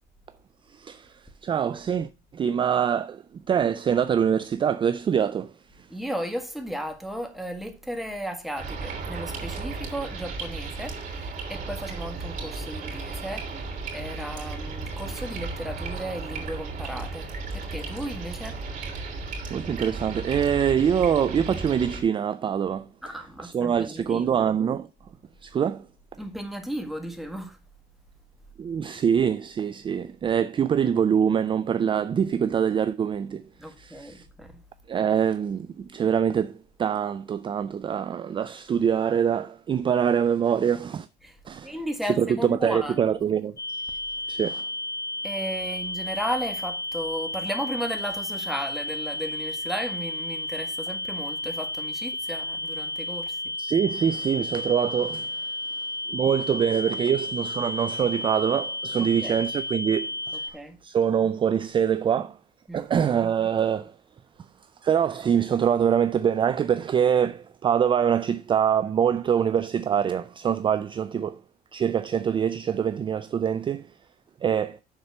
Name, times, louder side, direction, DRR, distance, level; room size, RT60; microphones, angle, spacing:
voice 1, 0.7-5.5 5.8-5.9 19.5-22.9 23.4-24.9 25.4-25.8 28.6-33.4 33.8-34.2 34.9-41.1 41.5-41.7 42.2-43.9 44.3-44.6 53.6-55.4 56.1-60.4 60.8-62.4 62.7-63.9 64.8-71.4 71.7-73.9 74.4-74.8, right 8 dB, 30° right, 0.4 m, -24 dB
voice 2, 5.9-17.3 17.5-18.6 23.0-24.4 26.2-27.6 33.6-34.6 41.2-41.4 41.6-43.3 44.3-44.4 45.2-53.5 59.0-59.4 60.3-60.8 62.7-62.8, equal, ahead, 1.6 m, -35 dB
sound 1, 8.6-22.0, right 3 dB, 50° right, 3.2 m, -35 dB
sound 2, 43.6-60.5, left 1 dB, 20° left, 0.8 m, -32 dB
6.7 x 4.4 x 6.7 m
cardioid pair, 110°, 17 cm